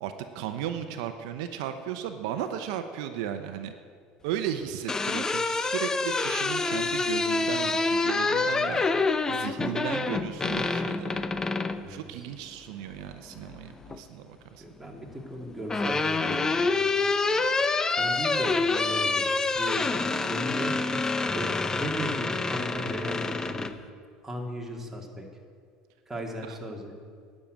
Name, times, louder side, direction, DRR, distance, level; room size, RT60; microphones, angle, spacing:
voice 1, 0.0-3.7 4.2-11.2 11.9-14.6 26.5-26.6, right 10 dB, 80° right, 8 dB, 0.7 m, -35 dB
sound 1, 4.6-11.8 13.3-14.0 15.2-23.7, left 3 dB, 20° left, 0.6 m, -27 dB
voice 2, 14.6-19.3 19.6-23.7 24.2-25.3 26.1-26.9, right 1 dB, 10° right, 0 dB, 2.1 m, -37 dB
10.0 x 6.6 x 8.9 m, 2.1 s
supercardioid pair, 105°, 3 cm